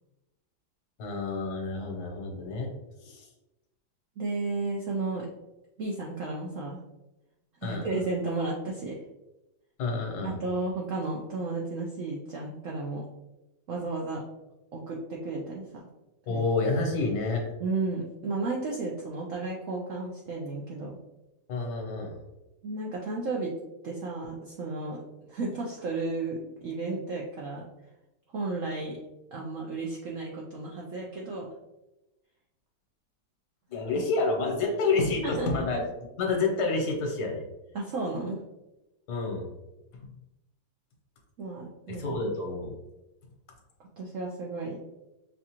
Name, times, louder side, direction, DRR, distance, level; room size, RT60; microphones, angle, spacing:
voice 1, 1.0-2.7 3.0-3.3 7.6-7.9 9.8-10.4 16.3-17.4 21.5-22.1 33.7-35.8 36.2-37.4 39.1-39.5 41.9-42.7, left 3 dB, 70° left, 0 dB, 1.5 m, -29 dB
voice 2, 4.2-5.3 5.8-6.8 7.6-9.0 10.2-13.0 13.7-14.2 14.7-15.9 16.3-16.4 17.6-21.0 22.6-23.5 23.8-25.0 25.3-27.6 28.3-29.0 29.3-31.5 33.9-34.0 35.2-35.7 37.7-38.4 41.4-42.2 44.0-44.8, right 3 dB, 60° right, -3 dB, 0.9 m, -33 dB
6.4 x 2.4 x 2.9 m, 0.97 s
omnidirectional pair, 1.8 m